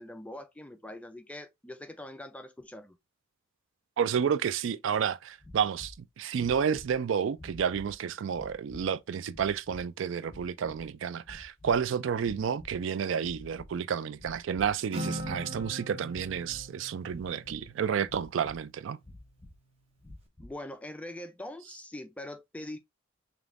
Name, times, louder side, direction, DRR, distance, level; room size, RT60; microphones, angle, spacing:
voice 1, 0.0-3.0 20.4-22.8, left 1 dB, 5° left, 0.3 m, -43 dB
voice 2, 4.0-19.0, right 7 dB, 70° right, 0.3 m, -30 dB
sound 1, 5.4-6.0 6.4-7.0 7.3-8.0 8.3-8.9 9.3-9.8 10.3-10.9 11.2-11.9 12.2-12.8 13.2-13.7 14.1-14.8 15.1-15.7 16.1-16.7 17.1-17.7 18.0-18.6 19.0-19.6 20.0-20.6, left 1 dB, 20° left, 0.7 m, -50 dB
Acoustic guitar, 14.9-18.6, right 1 dB, 30° right, 1.3 m, -40 dB
5.1 x 3.0 x 2.4 m
head